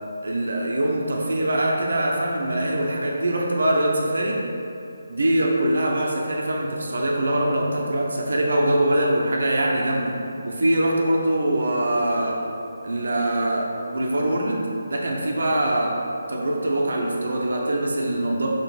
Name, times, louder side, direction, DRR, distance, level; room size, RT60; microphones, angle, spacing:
voice 1, 0.2-4.4 5.1-10.1 10.4-12.4 12.8-14.6 14.9-15.9 16.3-18.5, right 1 dB, 65° right, -1 dB, 1.2 m, -23 dB
6.1 x 5.9 x 4.3 m, 2.8 s
figure-of-eight pair, 150°, 0 cm